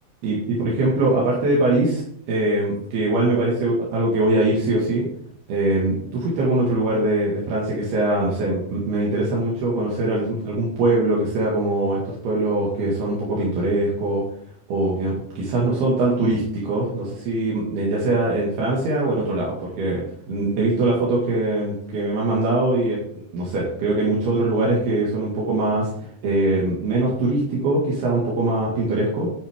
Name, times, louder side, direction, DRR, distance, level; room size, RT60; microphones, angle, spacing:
voice 1, 0.2-5.1 5.5-14.2 14.7-25.9 26.2-29.3, right 2 dB, 70° right, -5 dB, 4.0 m, -22 dB
11.0 x 9.3 x 3.7 m, 0.66 s
omnidirectional pair, 4.7 m